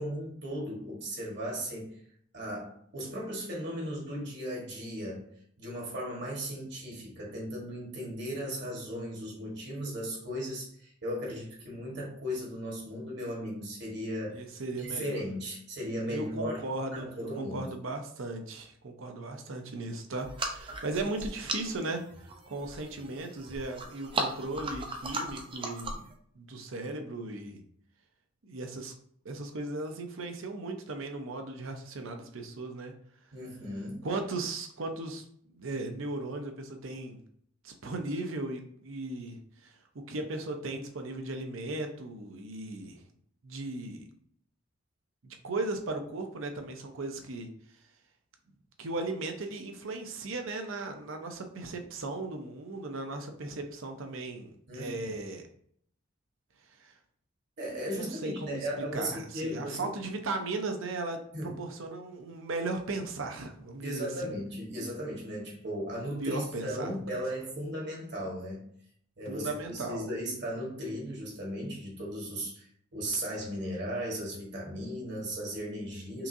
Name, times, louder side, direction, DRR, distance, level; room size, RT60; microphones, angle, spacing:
voice 1, 0.0-1.9 2.3-5.2 5.6-14.5 14.8-16.6 16.9-17.7 33.3-34.0 54.7-55.1 57.6-59.9 61.3-61.5 63.8-68.6 69.2-76.3, equal, 55° right, -2 dB, 1.5 m, -36 dB
voice 2, 14.3-15.2 16.1-22.0 22.5-26.1 26.3-27.6 28.4-28.9 29.2-32.9 34.0-35.2 35.5-37.2 37.6-43.0 43.4-44.1 45.2-47.5 48.8-55.4 56.8-56.9 57.9-64.3 66.2-67.0 69.3-70.1, right 2 dB, 70° right, 5 dB, 0.7 m, -37 dB
sound 1, 20.2-26.1, right 2 dB, 25° right, 0.5 m, -37 dB
5.7 x 2.5 x 2.7 m, 0.64 s
head